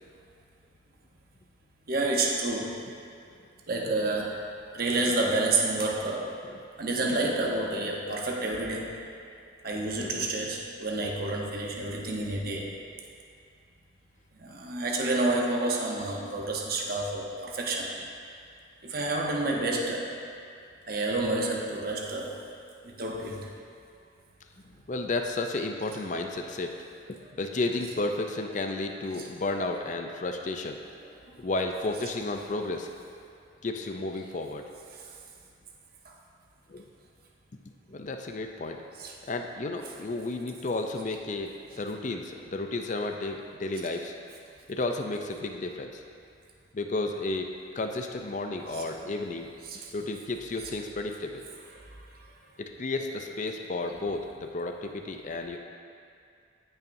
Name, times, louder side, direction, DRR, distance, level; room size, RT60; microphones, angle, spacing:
voice 1, 1.9-2.8 3.7-4.4 4.7-6.3 6.8-9.0 9.6-12.7 14.4-17.9 18.8-20.1 20.9-22.3 22.8-23.5 29.2-29.3 36.0-36.1 39.0-39.1 48.7-49.1 49.7-49.9 51.8-51.9, right 2 dB, 50° right, -1 dB, 1.0 m, -29 dB
voice 2, 10.0-10.3 24.9-26.8 27.4-30.8 31.4-32.9 33.6-34.6 36.7-36.9 37.9-38.8 39.3-44.2 44.7-46.0 46.7-47.5 47.7-49.5 49.9-51.4 52.6-55.6, left 2 dB, 40° left, 4 dB, 0.5 m, -32 dB
16.0 x 5.6 x 2.7 m, 2.4 s
head